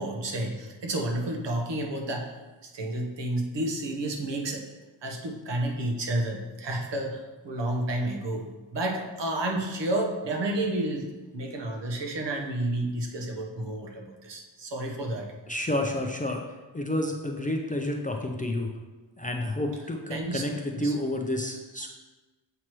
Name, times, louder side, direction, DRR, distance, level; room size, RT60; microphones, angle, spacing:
voice 1, 0.0-2.3 2.6-4.6 5.0-8.4 8.7-11.1 11.3-15.3 20.1-20.4 20.7-20.9, right 1 dB, 65° right, 1 dB, 1.0 m, -30 dB
voice 2, 15.5-16.4 16.7-18.7 19.2-21.9, left 1 dB, 20° left, 2 dB, 0.4 m, -30 dB
7.2 x 4.6 x 3.0 m, 1.2 s
wide cardioid pair, 115°, 46 cm